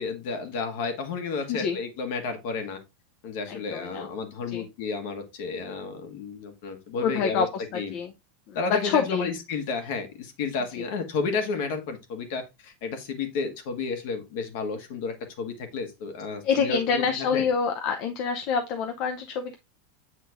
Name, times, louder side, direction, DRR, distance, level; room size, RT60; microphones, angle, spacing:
voice 1, 0.0-2.8 3.2-7.5 7.7-7.9 8.5-17.4, left 4 dB, 55° left, 6 dB, 1.6 m, -32 dB
voice 2, 3.5-4.1 4.5-4.7 7.0-8.1 8.5-9.3 10.8-10.9 16.4-19.6, left 6 dB, 40° left, 6 dB, 0.6 m, -27 dB
7.9 x 3.7 x 3.5 m, 0.23 s
supercardioid pair, 165°, 0 cm